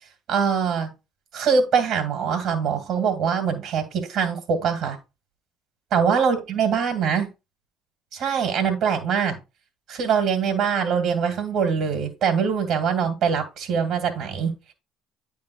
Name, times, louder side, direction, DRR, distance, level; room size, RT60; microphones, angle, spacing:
voice 1, 0.3-0.9 1.3-5.0 5.9-7.3 8.1-9.4 9.9-14.7, right 6 dB, 60° right, 2.1 m, -23 dB
9.7 x 3.7 x 4.6 m
hypercardioid pair, 55°, 0 cm